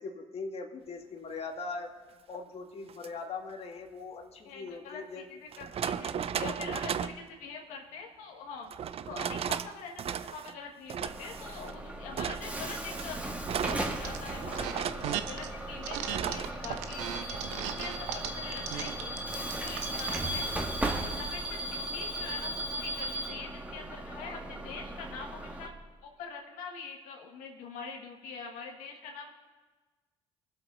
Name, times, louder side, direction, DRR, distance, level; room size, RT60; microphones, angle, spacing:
voice 1, 0.0-1.9 2.3-5.3 24.1-24.7, left 4 dB, 50° left, 3 dB, 1.9 m, -41 dB
sound 1, 2.9-3.1 4.7-4.8 5.5-7.2 8.7-9.7 10.0-10.5 10.9-11.7 12.2-15.4 16.1-16.5, right 8 dB, 50° right, 0.6 m, -35 dB
voice 2, 4.4-8.7 9.1-13.2 13.5-19.1 19.6-25.7 26.0-29.3, left 5 dB, 80° left, 1 dB, 1.7 m, -44 dB
Bus / Alarm, 11.1-25.7, right 1 dB, 10° right, 1.9 m, -37 dB
sound 2, 13.7-14.2 14.5-15.5 15.8-20.3, right 10 dB, 85° right, 0.9 m, -36 dB
22.5 x 7.9 x 4.0 m, 1.3 s
supercardioid pair, 70°, 13 cm